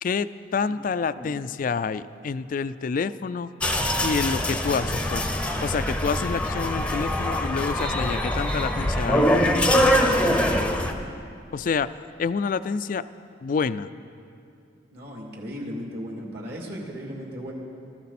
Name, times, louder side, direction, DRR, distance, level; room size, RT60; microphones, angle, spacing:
voice 1, 0.0-3.5 4.0-9.4 11.5-11.9 12.2-13.0 13.4-13.9, left 5 dB, 45° left, 14 dB, 0.3 m, -28 dB
sound 1, 3.6-10.9, equal, 5° left, 0.7 m, -23 dB
voice 2, 9.7-10.7 14.9-17.5, equal, 55° right, -2 dB, 2.7 m, -36 dB
19.0 x 14.0 x 4.2 m, 2.6 s
head